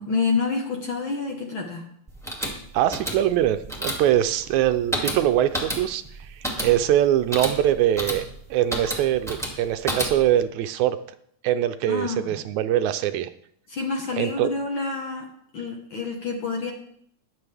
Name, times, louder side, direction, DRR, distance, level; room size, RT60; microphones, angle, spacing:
voice 1, 0.0-1.8 11.9-12.4 13.7-15.3 15.5-16.7, left 4 dB, 55° left, 1 dB, 1.6 m, -28 dB
sound 1, 2.1-10.4, equal, ahead, 1.6 m, -31 dB
voice 2, 2.7-8.3 8.5-11.0 11.4-13.3 14.2-14.5, right 12 dB, 80° right, 10 dB, 1.8 m, -23 dB
20.0 x 7.7 x 3.4 m, 0.68 s
omnidirectional pair, 3.5 m